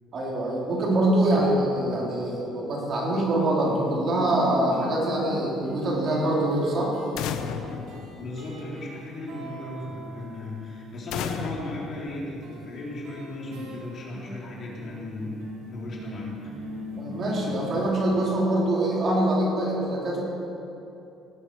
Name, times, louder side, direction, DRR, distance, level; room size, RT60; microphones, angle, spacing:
voice 1, 0.1-6.9 17.0-20.2, right 1 dB, 40° right, -3 dB, 3.4 m, -24 dB
sound 1, 3.2-3.3 3.6-10.9 12.4-18.3, equal, 75° right, 2.6 m, -40 dB
sound 2, 7.2-9.0 11.1-12.9, left 8 dB, 80° left, 0.7 m, -35 dB
voice 2, 8.1-16.4, left 2 dB, 40° left, -4 dB, 3.6 m, -36 dB
18.5 x 10.5 x 4.8 m, 2.8 s
cardioid pair, 135°, 0 cm